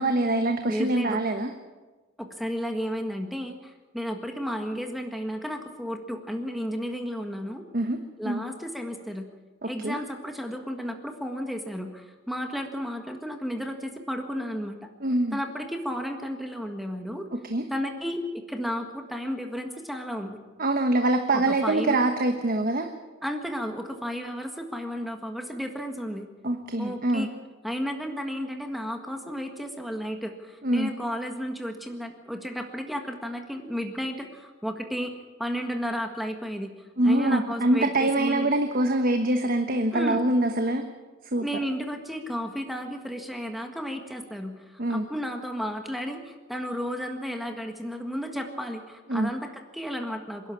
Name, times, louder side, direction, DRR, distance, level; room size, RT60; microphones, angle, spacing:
voice 1, 0.0-1.5 7.7-8.0 8.2-8.4 9.6-10.0 15.0-15.4 17.5-17.6 20.6-22.9 26.4-27.3 30.6-30.9 37.0-40.9 41.3-41.4 44.8-45.0 49.1-49.3, right 1 dB, 45° right, 6 dB, 1.2 m, -24 dB
voice 2, 0.7-1.2 2.2-7.6 8.2-9.3 9.6-14.8 15.3-17.2 17.7-20.4 21.3-22.0 23.2-26.3 26.8-27.3 27.6-35.1 35.4-38.5 39.9-40.2 41.4-50.5, equal, ahead, 4 dB, 1.6 m, -33 dB
27.0 x 11.5 x 8.7 m, 1.3 s
head